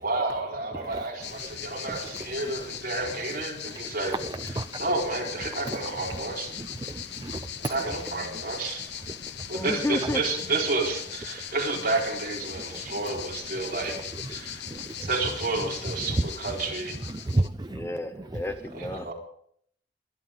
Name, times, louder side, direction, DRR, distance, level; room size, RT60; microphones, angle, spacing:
voice 1, 0.0-4.2 4.8-6.5 7.7-8.8 9.5-14.6 15.1-17.0 18.7-19.1, right 3 dB, 50° right, 4.5 m, -30 dB
voice 2, 0.7-1.1 1.4-1.5 1.9-2.7 3.7-3.8 4.1-4.8 5.4-6.2 6.5-8.0 9.1-9.6 12.6-12.9 13.6-15.1 15.8-16.3 17.1-17.9 18.3-18.4, right 2 dB, 20° right, 0.4 m, -34 dB
sound 1, 1.2-17.5, left 9 dB, 65° left, 0.9 m, -39 dB
voice 3, 9.5-10.2 17.7-19.1, left 1 dB, 15° left, 0.7 m, -32 dB
24.0 x 10.5 x 3.9 m
head